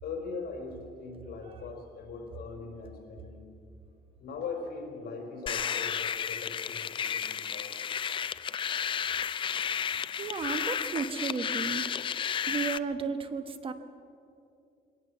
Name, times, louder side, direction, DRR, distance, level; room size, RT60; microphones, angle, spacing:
voice 1, 0.0-3.5 4.2-7.8 8.6-8.7 9.9-10.0, left 4 dB, 70° left, 2 dB, 4.4 m, -41 dB
sound 1, 5.5-12.8, left 8 dB, 30° left, 0.4 m, -32 dB
voice 2, 10.2-11.9 12.5-13.7, right 5 dB, 35° right, 8 dB, 1.1 m, -33 dB
22.0 x 18.5 x 7.2 m, 2.6 s
cardioid pair, 165°, 16 cm